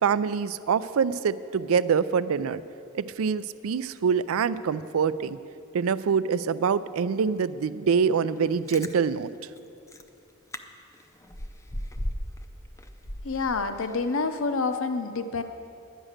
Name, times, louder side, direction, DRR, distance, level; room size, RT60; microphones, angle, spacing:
voice 1, 0.0-2.6 2.9-5.4 5.7-9.3, right 6 dB, 70° right, 15 dB, 0.4 m, -25 dB
Chewing mastication, 8.4-8.9 9.6-9.7 9.9-10.1 10.5-10.6 10.9-12.4 12.8-14.0 14.4-14.5, equal, 15° left, 0.5 m, -36 dB
voice 2, 13.2-15.4, left 4 dB, 65° left, 9 dB, 0.7 m, -28 dB
10.0 x 10.0 x 6.5 m, 2.5 s
head